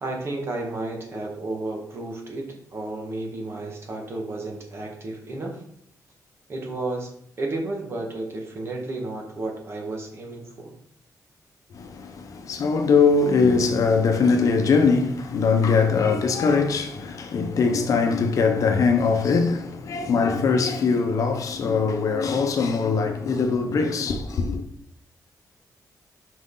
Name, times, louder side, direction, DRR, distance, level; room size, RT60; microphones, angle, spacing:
voice 1, 0.0-5.6 6.5-7.1 7.4-10.7, right 2 dB, 40° right, 1.6 m, -32 dB
voice 2, 11.7-24.6, left 4 dB, 55° left, 0.8 m, -21 dB
6.0 x 5.2 x 3.9 m
wide cardioid pair, 160°, 7 cm